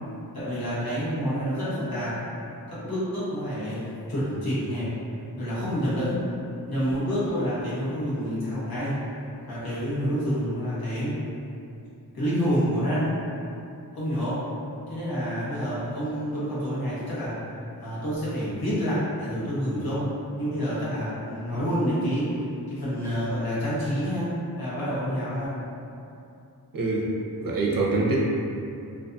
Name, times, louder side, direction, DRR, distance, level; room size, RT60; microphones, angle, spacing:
voice 1, 0.3-2.2 2.7-4.9 5.4-6.3 6.7-9.0 9.5-11.2 12.1-13.2 13.9-14.5 14.9-17.4 17.8-25.5, equal, 65° left, -10 dB, 1.1 m, -28 dB
voice 2, 26.7-27.1 27.4-28.2, right 3 dB, 60° right, -4 dB, 0.6 m, -24 dB
2.5 x 2.5 x 2.3 m, 2.6 s
wide cardioid pair, 65°, 39 cm